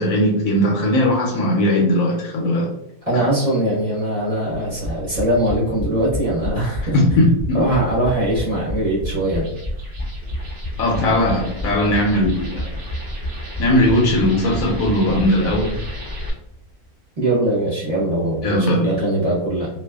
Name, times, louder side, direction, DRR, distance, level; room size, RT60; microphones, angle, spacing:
voice 1, 0.0-2.7 3.1-3.2 6.9-7.6 10.8-12.8 13.6-15.8 18.4-18.9, left 1 dB, 70° left, -1 dB, 1.0 m, -18 dB
voice 2, 3.1-7.0 7.5-9.4 17.2-19.7, right 1 dB, 30° right, -9 dB, 0.9 m, -21 dB
sound 1, 4.5-16.2 16.5-16.6 16.8-16.9, equal, ahead, 1.0 m, -30 dB
sound 2, 9.2-16.3, left 1 dB, 60° right, 0.9 m, -33 dB
2.6 x 2.3 x 2.2 m, 0.78 s
omnidirectional pair, 1.6 m